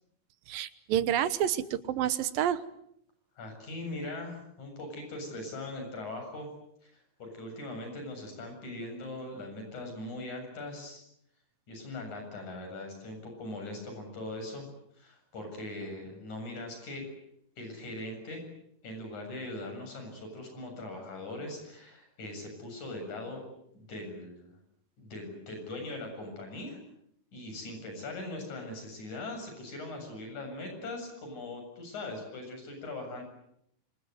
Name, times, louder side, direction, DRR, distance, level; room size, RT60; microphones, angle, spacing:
voice 1, 0.5-2.6, right 10 dB, 80° right, 13 dB, 2.9 m, -29 dB
voice 2, 3.4-6.5 6.8-11.0 11.7-14.7 15.0-17.1 17.6-18.4 18.8-23.4 23.7-24.6 25.0-26.8 27.3-33.2, left 2 dB, 55° left, 4 dB, 8.9 m, -40 dB
27.5 x 26.0 x 8.0 m, 0.75 s
omnidirectional pair, 4.0 m